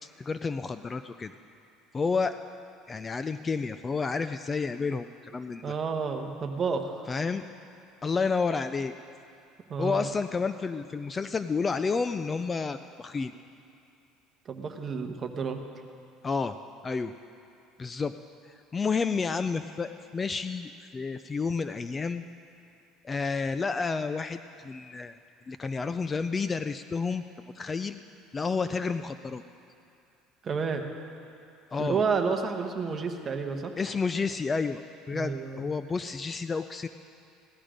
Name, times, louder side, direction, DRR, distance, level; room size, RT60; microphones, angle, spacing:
voice 1, 0.0-1.3 1.9-2.3 2.9-5.7 7.1-7.4 8.0-8.9 9.8-13.3 16.2-16.6 16.8-17.1 17.8-18.1 18.5-22.3 23.0-25.1 25.5-27.2 27.5-28.0 28.3-29.4 31.7-32.0 33.8-36.9, left 4 dB, 20° left, 11 dB, 0.3 m, -30 dB
voice 2, 5.6-7.0 9.7-10.1 14.4-15.6 30.4-30.9 31.8-33.7 35.1-35.7, right 5 dB, 30° right, 4 dB, 1.1 m, -30 dB
17.0 x 12.5 x 5.1 m, 2.6 s
cardioid pair, 145°, 0 cm